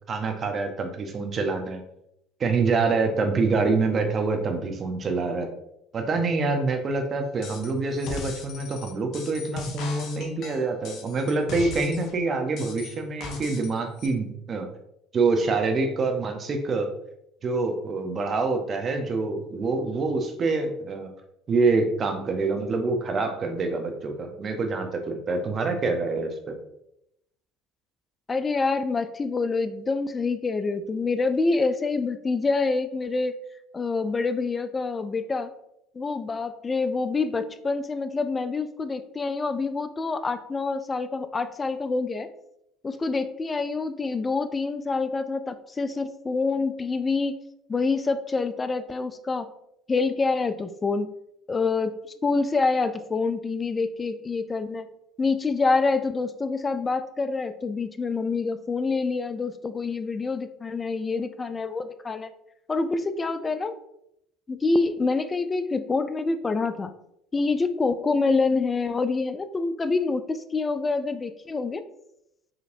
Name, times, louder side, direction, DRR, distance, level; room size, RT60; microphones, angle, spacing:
voice 1, 0.1-1.8 2.4-5.5 5.9-14.7 15.1-16.9 17.4-21.1 21.5-26.5, right 3 dB, 40° right, 5 dB, 0.8 m, -26 dB
sound 1, 7.4-7.7 8.0-12.1 12.6-13.7 14.0-14.1, left 4 dB, 60° left, 0.7 m, -38 dB
voice 2, 28.3-33.4 33.7-35.5 35.9-42.3 42.8-47.4 47.7-49.5 49.9-51.1 51.5-51.9 52.2-54.9 55.2-62.3 62.7-63.7 64.5-66.9 67.3-71.8, left 3 dB, 25° left, 11 dB, 0.4 m, -26 dB
4.9 x 3.1 x 2.7 m, 0.80 s
hypercardioid pair, 75°, 0 cm